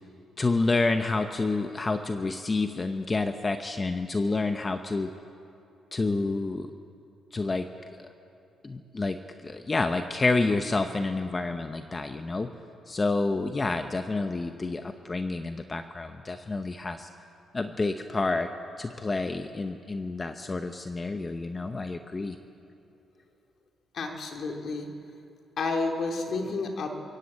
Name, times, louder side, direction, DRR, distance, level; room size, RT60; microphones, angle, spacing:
voice 1, 0.4-5.1 5.9-6.7 7.3-7.7 8.0-8.1 8.6-12.5 12.9-17.1 17.5-18.5 18.8-22.4, left 3 dB, 25° left, 7 dB, 0.9 m, -29 dB
voice 2, 23.9-24.9 25.6-27.0, left 3 dB, 55° left, 3 dB, 2.5 m, -30 dB
21.5 x 15.5 x 8.6 m, 2.7 s
cardioid pair, 90°, 0 cm